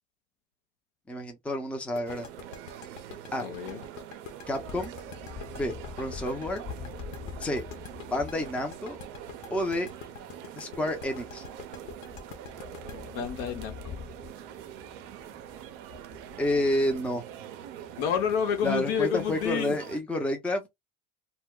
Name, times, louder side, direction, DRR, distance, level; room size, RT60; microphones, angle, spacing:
voice 1, 1.1-2.3 3.3-3.5 4.5-4.9 5.6-6.6 7.4-7.7 8.1-9.0 9.5-9.9 10.6-11.4 16.4-17.2 18.6-20.7, left 1 dB, 5° left, 0.6 m, -29 dB
sound 1, 2.0-14.7, left 8 dB, 90° left, 0.5 m, -46 dB
sound 2, 2.1-20.0, right 10 dB, 65° right, 0.6 m, -44 dB
voice 2, 3.4-3.8 12.9-14.0 18.0-19.8, left 8 dB, 60° left, 1.0 m, -29 dB
sound 3, 4.4-19.5, left 6 dB, 35° left, 1.3 m, -47 dB
2.3 x 2.1 x 3.7 m
hypercardioid pair, 80°, 38 cm